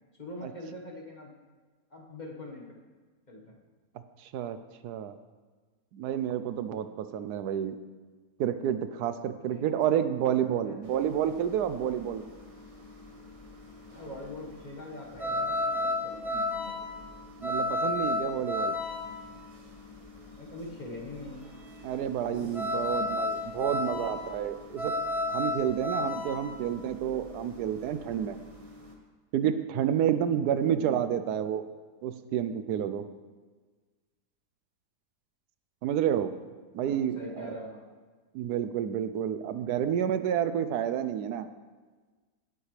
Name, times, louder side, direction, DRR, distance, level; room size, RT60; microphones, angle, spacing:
voice 1, 0.2-1.3 1.9-2.7 3.3-3.5 9.5-9.9 10.4-10.8 13.9-16.9 20.3-21.5 22.3-23.1 30.7-31.0 36.8-37.8, left 1 dB, 30° left, -2 dB, 1.5 m, -43 dB
voice 2, 4.2-4.6 4.8-5.1 5.9-7.8 8.4-12.2 17.4-18.8 21.8-24.9 25.3-28.4 29.3-31.6 32.0-33.1 35.8-36.3 36.7-37.6 38.3-41.5, right 9 dB, 80° right, 11 dB, 1.1 m, -29 dB
sound 1, 10.9-28.9, left 2 dB, 25° right, 1.2 m, -33 dB
18.0 x 8.1 x 3.3 m, 1.4 s
omnidirectional pair, 1.7 m